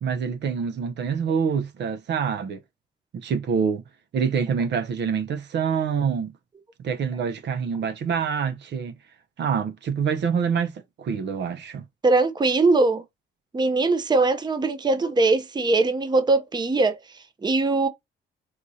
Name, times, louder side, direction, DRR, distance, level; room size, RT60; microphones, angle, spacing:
voice 1, 0.0-2.6 3.1-3.8 4.1-6.3 6.8-8.9 9.4-11.8, right 6 dB, 65° right, 0.8 m, -26 dB
voice 2, 12.0-13.0 13.5-17.9, right 3 dB, 20° right, 0.7 m, -21 dB
4.6 x 2.4 x 2.7 m
cardioid pair, 90°, 20 cm